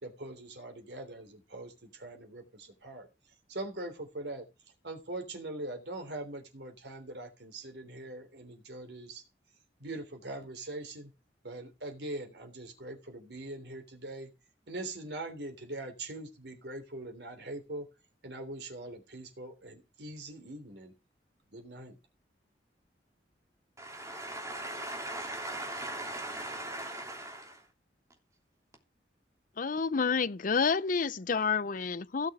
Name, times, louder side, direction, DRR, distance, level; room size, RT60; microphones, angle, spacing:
voice 1, 0.0-3.1 3.5-4.5 4.8-9.2 9.8-11.1 11.4-14.3 14.7-17.9 18.2-20.9 21.5-22.0, right 2 dB, 70° right, 3.4 m, -42 dB
voice 2, 23.8-27.6, right 1 dB, 20° right, 3.1 m, -39 dB
voice 3, 29.6-32.3, left 5 dB, 50° left, 0.6 m, -29 dB
16.5 x 6.3 x 5.0 m
head